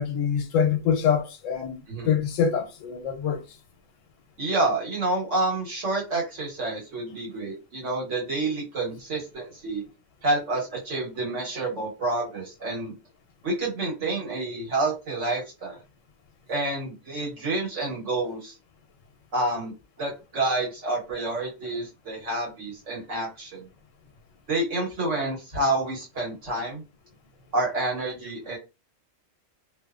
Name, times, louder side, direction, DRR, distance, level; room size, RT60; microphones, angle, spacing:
voice 1, 0.0-1.8 2.1-3.4, left 7 dB, 90° left, 1.0 m, -24 dB
voice 2, 4.4-9.8 10.2-12.9 13.4-15.8 16.5-18.6 19.3-23.7 24.5-26.8 27.5-28.6, right 2 dB, 75° right, 1.5 m, -28 dB
2.9 x 2.2 x 2.3 m
omnidirectional pair, 1.3 m